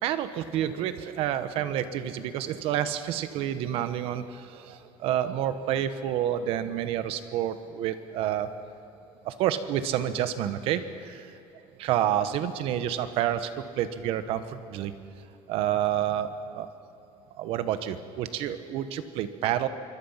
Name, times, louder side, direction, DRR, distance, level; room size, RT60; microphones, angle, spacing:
voice 1, 0.0-8.5 9.2-11.3 11.8-13.5 13.8-14.9 15.5-16.7 17.4-19.7, right 11 dB, 60° right, 11 dB, 1.4 m, -29 dB
26.0 x 24.0 x 5.9 m, 2.8 s
cardioid pair, 150°, 11 cm